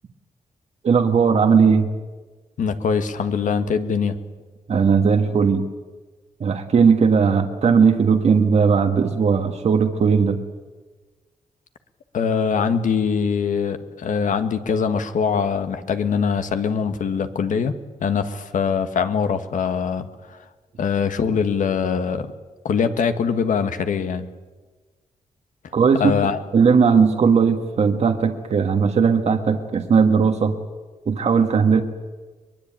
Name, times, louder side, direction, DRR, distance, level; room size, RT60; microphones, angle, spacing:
voice 1, 0.8-1.9 4.7-5.7 6.4-10.4 25.7-26.1 26.5-30.5 31.1-31.8, right 5 dB, 55° right, 5 dB, 1.6 m, -17 dB
voice 2, 2.6-4.1 12.1-17.7 18.0-20.4 20.8-22.3 22.6-24.3 26.0-26.4, left 6 dB, 75° left, 9 dB, 1.7 m, -22 dB
23.0 x 21.5 x 9.0 m, 1.3 s
wide cardioid pair, 115°, 14 cm